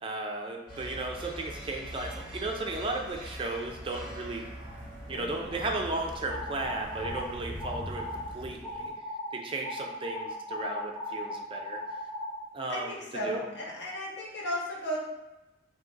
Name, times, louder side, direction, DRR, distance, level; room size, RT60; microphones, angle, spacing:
voice 1, 0.0-4.4 5.1-8.0 8.3-8.8 9.3-11.8 12.5-13.4, right 2 dB, 30° right, 2 dB, 0.4 m, -35 dB
sound 1, 0.7-8.6, right 1 dB, 10° right, 1.5 m, -43 dB
Crow, 2.5-8.9, equal, 45° left, 1.0 m, -47 dB
sound 2, 6.3-7.2 7.6-8.3 8.6-9.3 9.6-12.4, left 1 dB, 10° left, 1.3 m, -37 dB
voice 2, 12.7-15.0, equal, 75° left, -5 dB, 1.3 m, -34 dB
3.7 x 2.8 x 3.8 m, 1.0 s
head